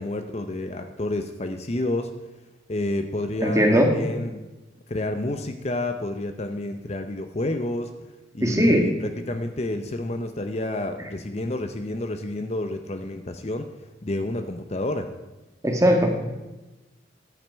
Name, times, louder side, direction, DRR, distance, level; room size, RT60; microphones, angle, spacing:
voice 1, 0.0-2.1 2.7-4.4 4.9-7.9 8.3-13.7 14.0-15.1, left 1 dB, 35° left, 7 dB, 0.7 m, -29 dB
voice 2, 3.4-3.9 8.4-8.9 15.6-16.2, equal, 15° right, 3 dB, 1.6 m, -19 dB
14.0 x 11.0 x 4.6 m, 1.1 s
head